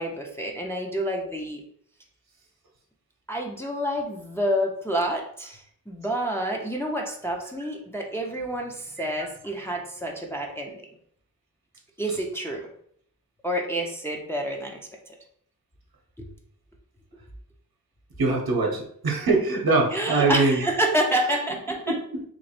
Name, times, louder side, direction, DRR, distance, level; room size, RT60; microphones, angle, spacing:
voice 1, 0.0-1.6 3.3-10.8 12.0-12.7 13.4-14.8 15.1-15.2 19.9-22.0, right 1 dB, 5° left, 0 dB, 0.5 m, -28 dB
voice 2, 18.2-20.7 21.9-22.0, right 3 dB, 75° right, 0 dB, 0.9 m, -22 dB
3.1 x 2.5 x 4.2 m, 0.65 s
wide cardioid pair, 85°, 36 cm